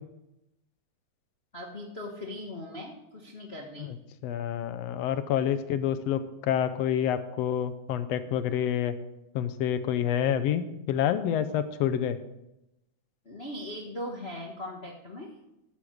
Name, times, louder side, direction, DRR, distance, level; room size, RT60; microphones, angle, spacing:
voice 1, 1.5-3.9 13.2-15.3, left 1 dB, 50° left, 0 dB, 0.7 m, -39 dB
voice 2, 4.2-9.0 9.4-12.2, left 9 dB, 70° left, 11 dB, 1.7 m, -28 dB
13.0 x 7.5 x 6.4 m, 0.90 s
omnidirectional pair, 3.3 m